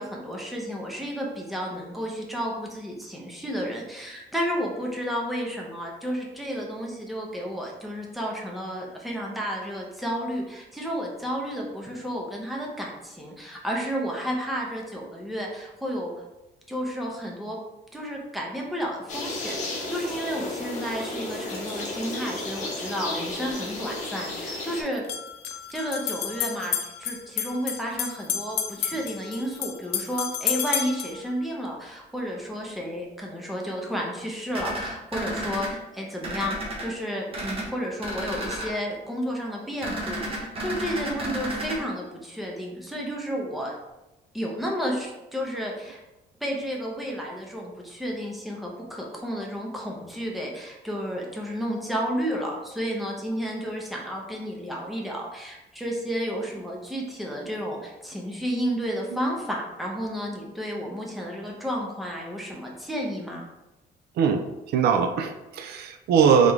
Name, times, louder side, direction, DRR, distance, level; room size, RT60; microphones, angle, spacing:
voice 1, 0.0-16.1 16.7-17.6 17.9-25.0 25.7-43.7 44.3-46.0 46.4-63.4, equal, ahead, -2 dB, 0.8 m, -32 dB
sound 1, 19.1-24.8, left 2 dB, 50° left, 1.0 m, -33 dB
sound 2, 23.3-23.4 24.9-31.2, left 9 dB, 75° left, 0.4 m, -31 dB
sound 3, 34.5-35.7 36.2-36.8 37.3-37.7 38.0-38.7 39.8-41.8, right 1 dB, 35° right, 1.1 m, -32 dB
voice 2, 64.2-66.5, right 6 dB, 75° right, 6 dB, 0.4 m, -21 dB
3.7 x 3.5 x 3.1 m, 0.98 s
cardioid pair, 145°, 17 cm